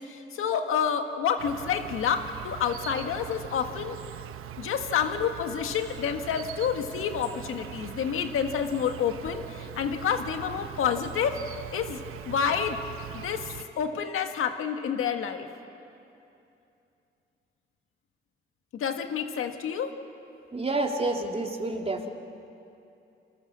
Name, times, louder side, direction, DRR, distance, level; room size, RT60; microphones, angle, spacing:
voice 1, 0.0-4.0 4.6-11.4 11.7-12.0 12.2-12.8 13.1-15.5 18.7-19.9, left 7 dB, 85° left, 6 dB, 1.7 m, -29 dB
Insect, 1.4-13.6, right 11 dB, 90° right, 0.9 m, -41 dB
voice 2, 20.5-22.1, right 2 dB, 30° right, 2 dB, 3.2 m, -29 dB
28.5 x 21.5 x 7.4 m, 2.7 s
cardioid pair, 60°, 21 cm